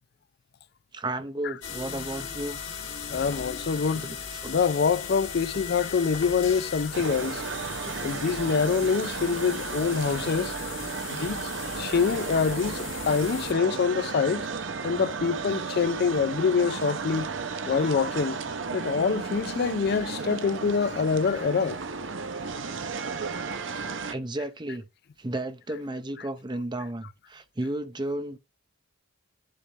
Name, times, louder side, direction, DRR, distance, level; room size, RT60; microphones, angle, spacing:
voice 1, 0.9-2.6 3.9-4.5 7.9-8.1 24.1-24.8 25.2-28.4, right 1 dB, 20° right, 0.7 m, -33 dB
sound 1, 1.6-13.5, left 6 dB, 70° left, 2.6 m, -38 dB
voice 2, 3.1-4.1 4.5-7.4 8.0-10.5 11.1-11.4 11.8-14.5 14.8-17.3 17.7-18.4 18.7-21.8, left 5 dB, 50° left, 0.4 m, -25 dB
sound 2, 6.9-24.1, right 4 dB, 60° right, 0.8 m, -34 dB
10.0 x 3.5 x 4.0 m
head